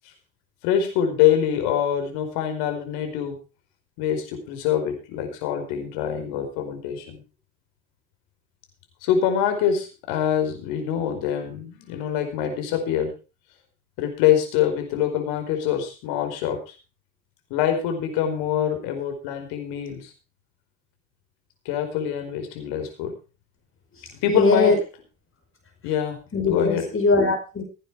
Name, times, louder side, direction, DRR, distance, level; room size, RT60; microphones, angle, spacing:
voice 1, 0.6-3.4 4.0-7.2 9.0-13.1 14.0-16.7 17.5-20.1 21.6-23.1 24.2-24.7 25.8-26.2 26.4-26.8, left 9 dB, 75° left, 6 dB, 4.9 m, -24 dB
voice 2, 24.3-24.8 26.3-27.6, left 3 dB, 30° left, 5 dB, 5.2 m, -20 dB
17.0 x 9.0 x 4.7 m, 0.32 s
hypercardioid pair, 70°, 39 cm